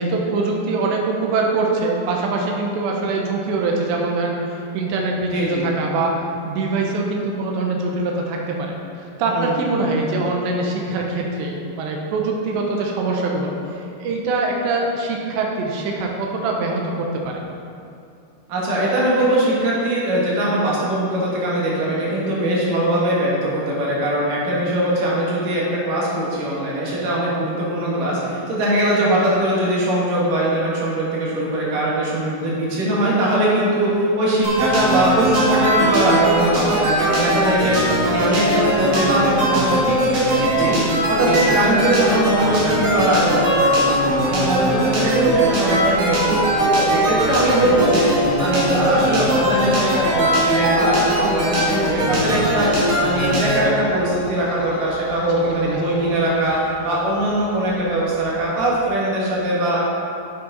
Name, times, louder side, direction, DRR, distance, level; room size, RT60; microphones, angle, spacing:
voice 1, 0.0-17.4 41.3-41.6 55.4-56.1, right 3 dB, 80° right, 0 dB, 3.1 m, -23 dB
voice 2, 5.3-5.7 9.3-9.7 18.5-46.5 46.8-56.6 56.8-59.8, right 1 dB, 55° right, -6 dB, 3.0 m, -21 dB
sound 1, 34.4-53.6, right 1 dB, 40° right, 2.2 m, -20 dB
sound 2, 43.8-58.8, left 5 dB, 80° left, 2.3 m, -35 dB
9.6 x 7.6 x 4.1 m, 2.6 s
omnidirectional pair, 5.2 m